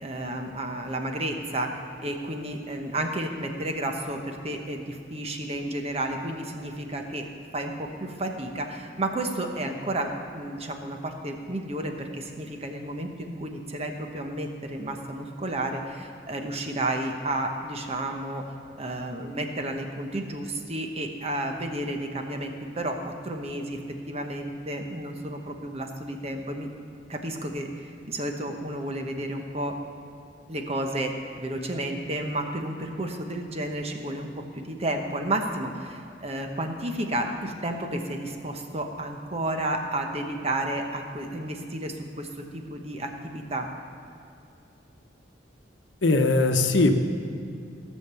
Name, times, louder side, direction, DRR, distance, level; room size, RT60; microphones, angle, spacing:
voice 1, 0.0-1.7 2.0-7.3 7.5-18.4 18.8-23.8 24.1-26.7 27.1-29.8 30.5-34.3 34.5-42.3 42.5-43.7, right 1 dB, 35° right, 4 dB, 1.0 m, -31 dB
voice 2, 46.0-47.0, left 2 dB, 85° left, 6 dB, 0.9 m, -20 dB
15.5 x 6.6 x 6.9 m, 2.6 s
head